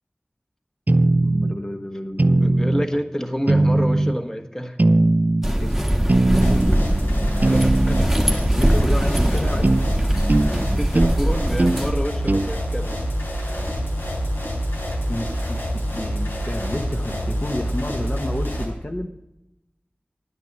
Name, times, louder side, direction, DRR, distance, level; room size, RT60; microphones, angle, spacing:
sound 1, 0.9-1.6 2.2-2.9 3.5-4.2 4.8-5.5 6.1-6.8 7.4-8.1 9.6-9.9 10.3-10.5 10.9-11.2 11.6-11.8 12.3-12.5, right 2 dB, 50° right, 0.5 m, -19 dB
voice 1, 1.2-2.6 5.6-5.8 8.6-9.7 15.1-19.1, left 1 dB, 45° left, 4 dB, 1.0 m, -30 dB
voice 2, 2.4-4.8 7.5-8.2 10.7-13.0, equal, 15° left, 4 dB, 1.3 m, -28 dB
sound 2, 5.4-11.9, right 1 dB, 5° right, 1.5 m, -21 dB
sound 3, 6.4-18.7, equal, 80° left, 4.3 m, -26 dB
11.0 x 9.3 x 6.0 m, 0.90 s
wide cardioid pair, 45°, 4 cm